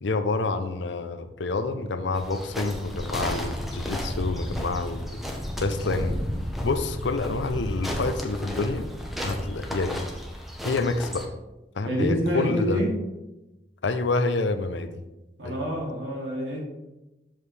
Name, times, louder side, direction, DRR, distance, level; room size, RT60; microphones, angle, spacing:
voice 1, 0.0-5.2 5.6-6.2 6.6-8.9 9.2-10.1 10.6-11.3 11.8-12.8 13.8-15.0 15.4-15.5, left 3 dB, 80° left, 8 dB, 0.6 m, -28 dB
sound 1, 2.2-11.3, equal, ahead, 0.9 m, -32 dB
voice 2, 11.8-12.9 15.4-16.6, equal, 80° right, -3 dB, 2.5 m, -27 dB
7.5 x 6.3 x 3.4 m, 1.0 s
head